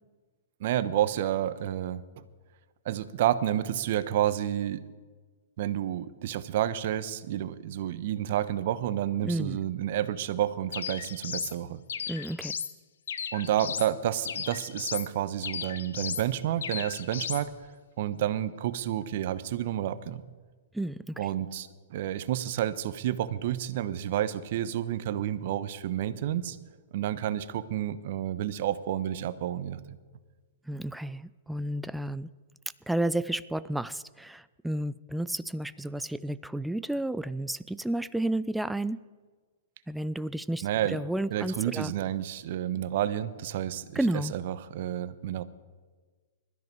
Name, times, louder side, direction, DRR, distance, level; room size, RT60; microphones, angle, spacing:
voice 1, 0.6-2.0 2.8-4.8 5.6-11.8 13.3-17.5 18.0-20.2 21.2-26.6 26.9-30.0 40.6-41.0 41.3-45.4, right 11 dB, 55° right, 14 dB, 1.1 m, -30 dB
voice 2, 9.2-9.6 12.1-12.5 20.7-21.1 30.7-32.3 32.9-39.0 39.9-41.9 44.0-44.3, right 1 dB, 5° right, 16 dB, 0.5 m, -31 dB
sound 1, 10.7-11.5 11.9-12.7 13.1-13.9 14.2-15.1 15.4-16.3 16.6-17.4, left 7 dB, 70° left, 1.2 m, -35 dB
21.5 x 13.5 x 4.7 m, 1.4 s
hypercardioid pair, 120°, 0 cm